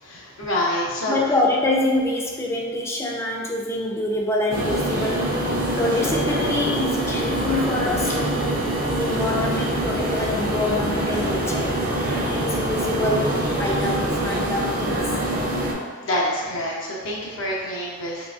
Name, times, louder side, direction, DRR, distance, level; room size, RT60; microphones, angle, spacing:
voice 1, 0.0-1.2 16.0-18.3, left 1 dB, 65° left, -4 dB, 0.6 m, -27 dB
voice 2, 1.1-5.3 5.7-11.8 12.1-15.1, left 1 dB, 15° left, -2 dB, 0.4 m, -25 dB
sound 1, 4.5-15.7, right 1 dB, 45° right, 0.6 m, -24 dB
3.8 x 3.3 x 2.4 m, 1.6 s
head